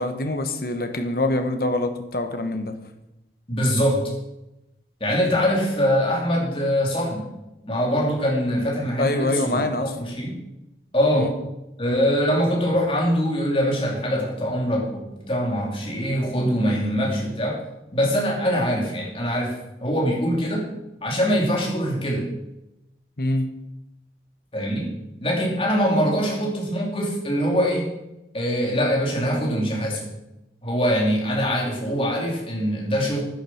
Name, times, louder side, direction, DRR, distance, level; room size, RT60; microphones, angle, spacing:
voice 1, 0.0-2.8 9.0-9.9 11.1-11.3 23.2-23.5, left 2 dB, 55° left, 7 dB, 1.2 m, -24 dB
voice 2, 3.5-4.1 5.0-7.3 7.6-10.4 10.9-11.4 11.8-17.6 17.9-19.6 19.8-20.7 21.0-22.3 24.5-24.9 25.2-27.9 28.3-30.1 30.6-33.2, equal, 30° left, -2 dB, 2.9 m, -23 dB
10.0 x 10.0 x 5.8 m, 0.92 s
head